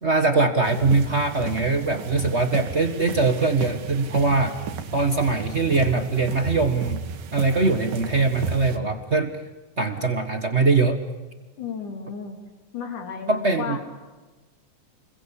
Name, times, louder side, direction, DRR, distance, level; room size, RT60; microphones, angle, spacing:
voice 1, 0.0-4.6 4.9-7.0 7.3-9.4 9.8-11.0 13.3-13.8, right 3 dB, 55° right, 7 dB, 0.7 m, -22 dB
sound 1, 0.6-8.8, right 6 dB, 90° right, 3.4 m, -34 dB
voice 2, 11.6-12.4 12.7-13.8, left 6 dB, 70° left, 4 dB, 5.0 m, -33 dB
29.5 x 22.0 x 8.5 m, 1.2 s
omnidirectional pair, 3.7 m